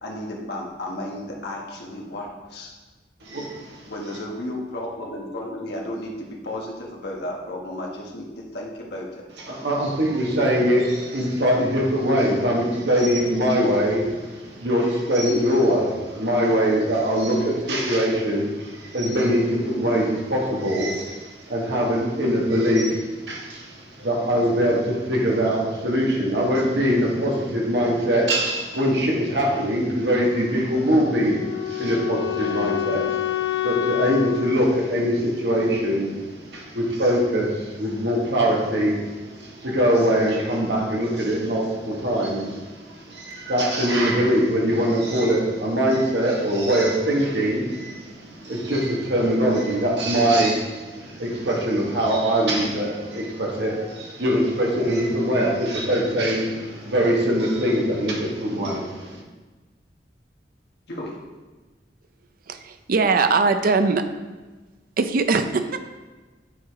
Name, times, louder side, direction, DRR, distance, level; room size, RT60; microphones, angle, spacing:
voice 1, 0.0-2.7 3.9-9.2 60.9-61.2, left 1 dB, 65° left, -1 dB, 1.4 m, -33 dB
voice 2, 3.2-3.9 9.5-59.2, equal, 75° right, -2 dB, 1.6 m, -22 dB
Wind instrument woodwind instrument, 30.9-35.9, left 14 dB, 85° left, 0.5 m, -28 dB
voice 3, 62.5-64.0 65.0-65.8, right 4 dB, 55° right, 9 dB, 0.5 m, -21 dB
8.7 x 4.8 x 3.6 m, 1.3 s
head